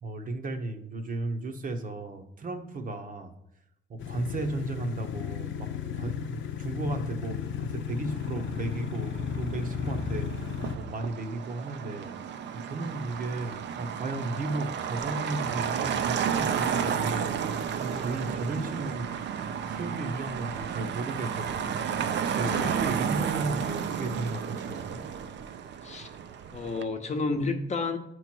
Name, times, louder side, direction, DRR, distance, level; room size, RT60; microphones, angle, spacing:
voice 1, 0.0-3.4 3.9-12.1 12.6-19.1 19.5-21.8 22.4-25.1, right 2 dB, 45° right, 6 dB, 0.9 m, -35 dB
sound 1, 4.0-10.8, left 7 dB, 70° left, 0.7 m, -34 dB
Motor vehicle (road), 8.1-26.8, right 7 dB, 65° right, 0.6 m, -32 dB
voice 2, 22.4-22.8 25.8-26.1 26.5-28.0, left 3 dB, 35° left, 5 dB, 0.9 m, -31 dB
8.1 x 3.1 x 6.0 m, 0.80 s
cardioid pair, 90°, 20 cm